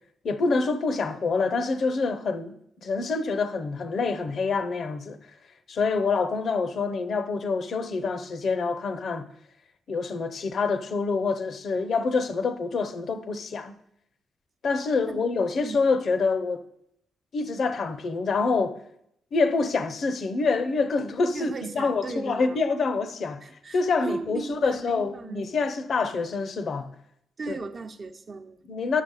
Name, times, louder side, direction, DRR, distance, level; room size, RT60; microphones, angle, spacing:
voice 1, 0.2-2.6 2.8-5.2 5.7-9.3 9.9-13.7 14.6-16.6 17.3-18.8 19.3-23.4 23.7-26.9 27.5-27.6 28.7-29.0, left 4 dB, 60° left, 0.8 m, -26 dB
voice 2, 21.3-22.6 23.4-25.5 27.4-28.6, right 3 dB, 50° right, 0.8 m, -37 dB
9.2 x 5.9 x 4.8 m
supercardioid pair, 60°, 0 cm